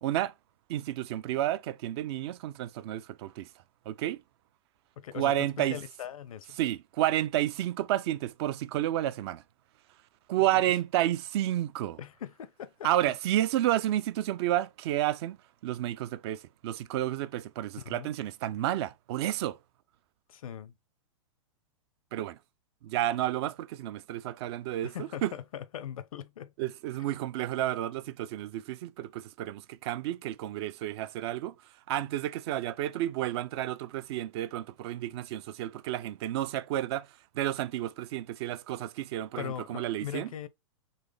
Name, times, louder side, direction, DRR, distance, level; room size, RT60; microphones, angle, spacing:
voice 1, 0.0-0.3 0.7-3.5 3.9-4.2 5.1-5.8 6.6-9.4 10.3-12.0 12.8-15.4 15.6-19.6 22.1-22.4 22.8-25.3 26.6-31.6 31.9-37.1 37.3-40.3, right 13 dB, 50° right, 0.4 m, -31 dB
voice 2, 5.0-6.6 10.3-10.7 12.0-13.1 17.8-18.1 20.3-20.7 24.8-26.5 39.4-40.5, left 10 dB, 85° left, 0.6 m, -40 dB
4.1 x 3.2 x 3.3 m
hypercardioid pair, 140°, 18 cm